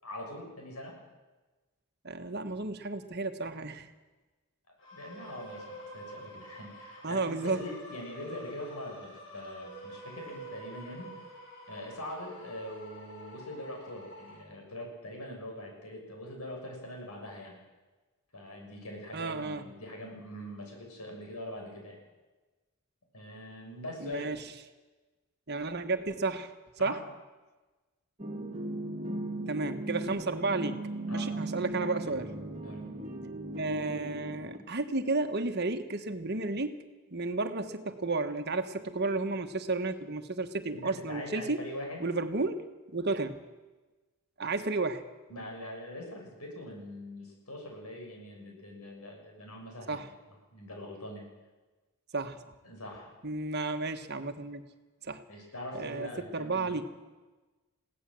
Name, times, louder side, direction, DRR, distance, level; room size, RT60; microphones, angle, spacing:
voice 1, 0.0-1.0 4.9-11.1 11.7-17.6 18.3-22.0 23.1-24.3 26.8-27.0 31.1-31.3 32.6-32.9 40.7-42.0 45.3-50.0 50.5-51.3 52.6-53.1 55.3-56.9, left 1 dB, 90° left, 1 dB, 6.5 m, -43 dB
voice 2, 2.0-3.9 7.0-7.6 19.1-19.6 24.0-24.4 25.5-26.5 26.8-27.0 29.5-30.8 31.1-32.4 33.6-36.8 37.1-41.6 42.0-42.7 42.9-43.4 44.4-45.0 49.9-50.1 52.1-52.4 53.2-54.6 55.0-55.2 55.7-56.8, right 3 dB, 50° right, 8 dB, 1.3 m, -32 dB
sound 1, 4.8-14.4, equal, 60° left, 6.8 m, -47 dB
sound 2, 28.2-34.6, right 2 dB, 30° right, 1.8 m, -37 dB
21.5 x 16.5 x 7.7 m, 1.2 s
head